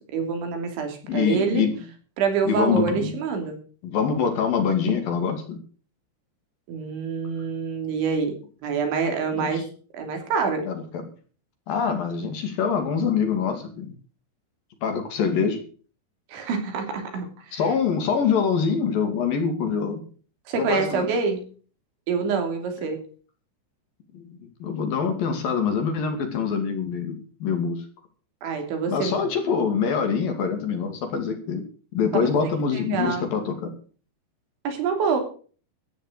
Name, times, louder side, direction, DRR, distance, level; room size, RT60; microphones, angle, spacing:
voice 1, 0.1-1.6 2.2-3.6 6.7-8.4 8.6-9.6 9.9-10.7 16.3-17.6 20.5-21.4 22.1-23.0 28.4-29.2 32.2-32.3 32.7-33.3 34.7-35.2, right 5 dB, 80° right, 5 dB, 5.4 m, -26 dB
voice 2, 1.1-1.8 2.5-3.1 3.8-5.6 9.3-9.6 10.7-11.1 11.7-13.9 14.8-15.6 17.5-20.0 20.6-21.1 24.1-27.8 28.9-31.6 31.9-33.7, left 6 dB, 55° left, 6 dB, 3.7 m, -25 dB
14.0 x 10.0 x 6.6 m, 0.41 s
omnidirectional pair, 5.2 m